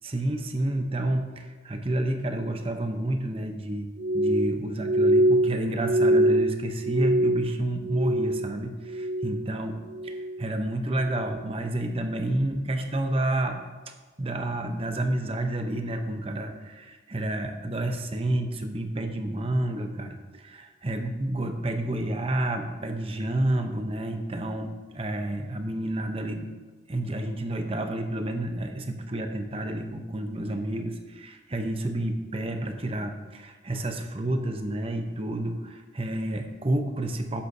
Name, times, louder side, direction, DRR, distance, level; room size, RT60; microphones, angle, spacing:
voice 1, 0.0-3.9 4.1-9.8 10.4-26.5 26.9-37.4, right 1 dB, 30° right, 5 dB, 0.8 m, -30 dB
Glass, 4.0-8.6 8.9-9.5 9.9-10.5 11.0-11.3, right 1 dB, 65° right, 0.6 m, -24 dB
12.5 x 10.0 x 2.7 m, 1.3 s
head